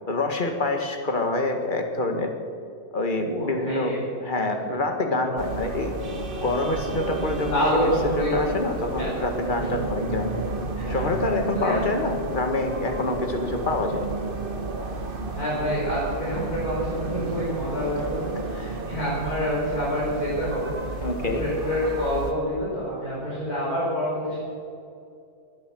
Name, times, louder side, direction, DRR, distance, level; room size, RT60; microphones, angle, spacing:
voice 1, 0.1-2.3 2.9-5.9 6.4-7.6 8.2-10.4 10.9-14.1 18.6-18.8 21.0-21.5, left 2 dB, 30° left, 4 dB, 1.8 m, -26 dB
voice 2, 3.2-4.0 4.6-4.7 6.3-6.4 7.5-8.3 9.0-9.1 10.8-11.2 11.5-11.8 15.3-24.4, equal, 70° left, -8 dB, 5.9 m, -27 dB
sound 1, 5.4-22.3, right 2 dB, 35° right, 1.4 m, -32 dB
22.5 x 8.6 x 7.5 m, 2.5 s
omnidirectional pair, 1.7 m